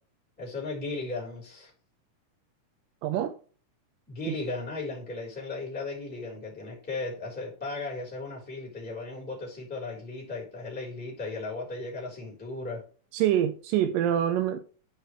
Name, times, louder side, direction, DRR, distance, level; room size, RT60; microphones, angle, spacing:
voice 1, 0.4-1.7 4.1-12.8, left 3 dB, 5° left, 3.0 m, -36 dB
voice 2, 3.0-3.4 4.3-4.4 13.1-14.6, right 10 dB, 85° right, 2.3 m, -25 dB
11.0 x 4.9 x 3.1 m
omnidirectional pair, 4.0 m